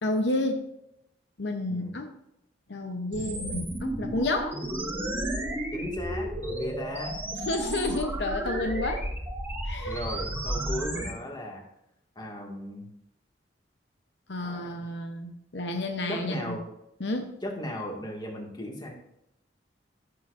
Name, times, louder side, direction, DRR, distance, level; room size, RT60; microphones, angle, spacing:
voice 1, 0.0-0.7 1.4-2.1 2.7-4.6 7.4-9.1 9.6-10.2 14.3-16.6 17.0-17.3, left 2 dB, 70° left, 5 dB, 0.9 m, -30 dB
sound 1, 3.1-11.1, right 1 dB, 10° right, 1.7 m, -33 dB
voice 2, 5.7-7.1 9.9-11.6 12.2-12.9 14.4-14.9 16.1-16.6 17.4-18.9, equal, 25° left, 0 dB, 2.1 m, -36 dB
15.0 x 6.9 x 2.6 m, 0.82 s
head